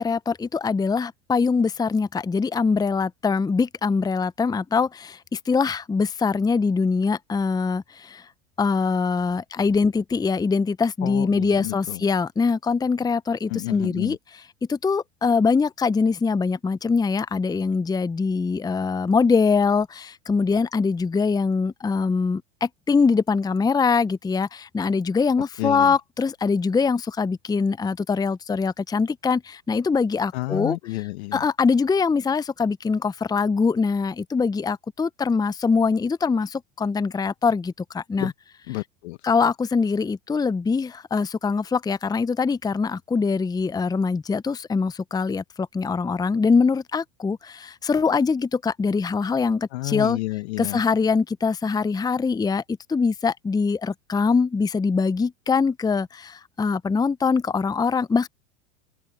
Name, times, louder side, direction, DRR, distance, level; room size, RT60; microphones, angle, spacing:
voice 1, 0.0-8.3 8.6-14.2 14.7-30.8 31.3-38.3 39.2-50.2 50.6-52.6 52.9-58.3, left 5 dB, 10° left, 0.8 m, -23 dB
voice 2, 11.0-12.1 13.5-14.2 25.6-25.9 30.3-31.4 38.2-38.3 38.7-39.2 49.7-50.8, left 20 dB, 65° left, 1.5 m, -30 dB
open air
hypercardioid pair, 85°, 35 cm